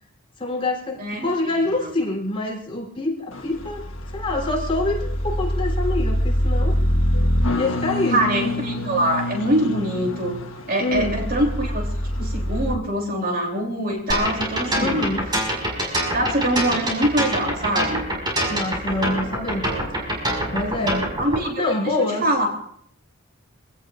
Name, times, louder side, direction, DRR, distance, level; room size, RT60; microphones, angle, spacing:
voice 1, 0.4-3.9 4.1-6.7 7.6-8.2 10.8-11.2 14.8-15.3 18.5-19.6 20.2-21.1 21.6-22.2, left 2 dB, 25° left, 0 dB, 3.7 m, -26 dB
voice 2, 1.0-1.3 1.6-1.9 8.1-10.4 10.7-11.8 12.2-15.1 16.1-18.0 21.2-21.6 22.0-22.5, right 1 dB, 45° right, 1 dB, 3.3 m, -23 dB
sound 1, 3.3-12.7, equal, 70° left, 1.4 m, -25 dB
sound 2, 14.1-21.4, right 1 dB, 20° right, 5.6 m, -24 dB
26.0 x 17.5 x 2.6 m, 0.63 s
head